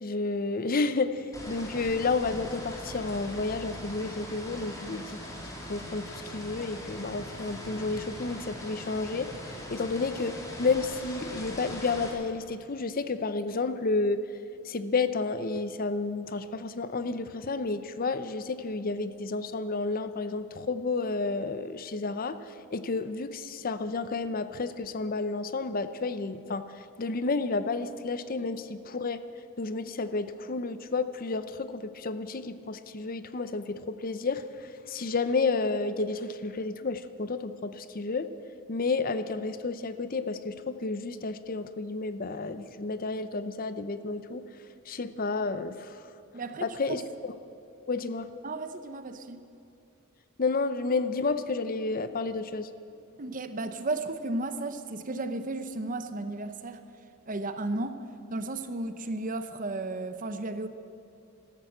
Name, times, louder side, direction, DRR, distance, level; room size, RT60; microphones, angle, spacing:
voice 1, 0.0-5.2 5.7-9.3 9.7-14.2 14.6-22.4 22.7-26.6 27.0-29.2 29.6-38.3 38.7-44.4 44.9-46.0 46.6-47.0 47.9-48.3 50.4-52.7, left 3 dB, 40° left, 12 dB, 0.6 m, -31 dB
sound 1, 1.3-12.1, left 1 dB, 15° left, 2.3 m, -41 dB
voice 2, 46.3-47.0 48.4-49.4 53.2-56.8 57.3-58.0 58.3-60.7, right 2 dB, 40° right, 10 dB, 0.8 m, -34 dB
13.5 x 13.0 x 7.8 m, 2.8 s
head